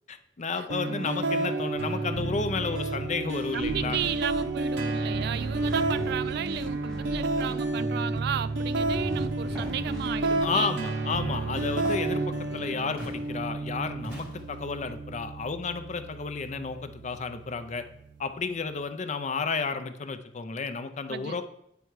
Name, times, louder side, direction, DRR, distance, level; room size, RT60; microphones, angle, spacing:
voice 1, 0.1-4.0 10.4-17.8 18.2-21.4, left 4 dB, 40° left, 0.5 m, -32 dB
sound 1, 0.7-18.7, right 2 dB, 80° right, 0.7 m, -31 dB
voice 2, 3.5-10.8 21.1-21.4, right 8 dB, 60° right, 0.3 m, -34 dB
sound 2, 3.6-5.0 5.3-8.2 8.7-10.4, left 1 dB, 5° left, 1.0 m, -40 dB
Walk footsteps, 9.5-9.8 10.5-10.8 11.9-12.2 13.0-13.2 14.0-14.5, equal, 15° right, 2.6 m, -40 dB
8.8 x 3.4 x 4.7 m
head